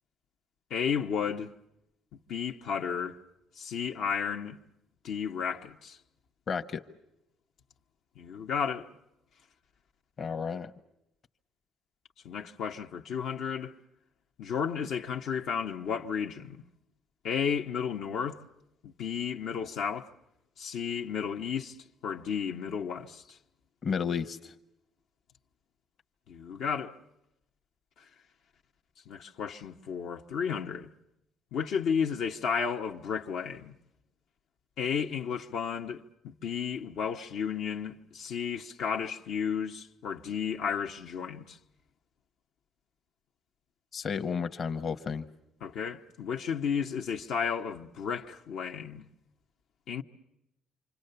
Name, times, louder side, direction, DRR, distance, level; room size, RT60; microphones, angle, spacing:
voice 1, 0.7-1.5 2.3-3.2 3.6-4.6 5.0-6.0 8.2-8.9 12.2-13.7 14.4-16.6 17.2-18.4 18.8-20.1 20.6-21.8 22.0-23.2 26.3-26.9 29.1-30.9 31.5-33.8 34.8-41.6 45.6-49.0 49.9-50.0, left 7 dB, 75° left, 1.0 m, -33 dB
voice 2, 6.5-6.8 10.2-10.7 23.8-24.5 43.9-45.2, left 6 dB, 45° left, 1.1 m, -32 dB
28.0 x 25.5 x 6.8 m
cardioid pair, 105°, 0 cm